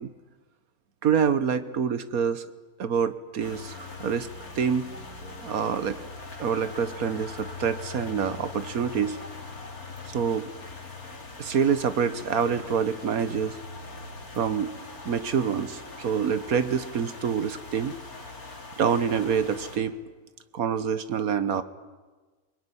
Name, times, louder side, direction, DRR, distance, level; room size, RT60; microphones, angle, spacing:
voice 1, 1.0-2.5 2.8-4.3 4.5-4.9 5.4-6.0 6.4-9.2 10.1-10.5 11.4-13.6 14.4-14.7 15.0-17.9 18.8-19.9 20.5-21.6, right 7 dB, 75° right, 12 dB, 1.6 m, -26 dB
sound 1, 3.4-19.8, left 3 dB, 90° left, 3.4 m, -41 dB
23.5 x 21.0 x 10.0 m, 1.3 s
omnidirectional pair, 1.5 m